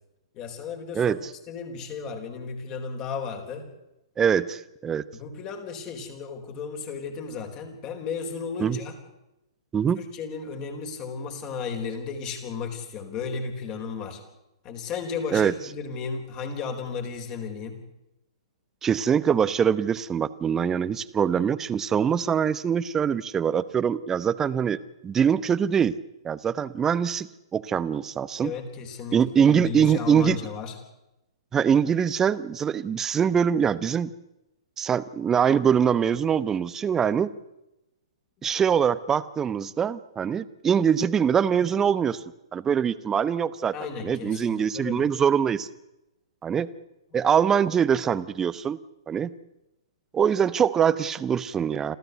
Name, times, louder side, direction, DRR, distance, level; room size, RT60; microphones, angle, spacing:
voice 1, 0.3-1.1 1.5-3.7 5.1-8.9 10.0-14.2 14.6-17.8 28.4-30.7 43.7-45.1, left 5 dB, 30° left, 5 dB, 4.3 m, -34 dB
voice 2, 4.2-5.0 8.6-8.8 9.7-10.0 15.3-15.5 18.8-24.8 25.0-25.9 26.2-28.5 29.1-30.4 31.5-34.1 34.8-37.3 38.4-42.2 42.5-43.7 44.0-45.7 46.4-46.7 47.1-48.8 49.1-49.3 50.1-52.0, right 7 dB, 15° right, 16 dB, 0.9 m, -23 dB
27.0 x 15.0 x 8.1 m, 0.93 s
figure-of-eight pair, 115°, 3 cm